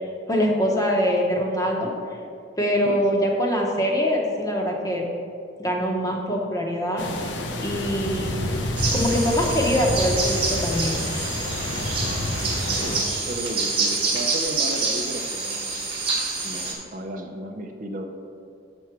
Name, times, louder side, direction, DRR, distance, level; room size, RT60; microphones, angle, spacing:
voice 1, 0.3-1.9 2.6-5.0 5.6-7.1 7.6-8.3 8.9-11.0, equal, 20° left, 0 dB, 0.9 m, -23 dB
voice 2, 2.8-3.3 12.8-15.9 16.4-18.0, right 1 dB, 45° right, 4 dB, 0.6 m, -34 dB
sound 1, 7.0-13.0, left 1 dB, 80° left, 0.8 m, -28 dB
sound 2, 8.8-16.7, right 3 dB, 30° right, 1.4 m, -27 dB
7.1 x 6.1 x 4.6 m, 2.4 s
head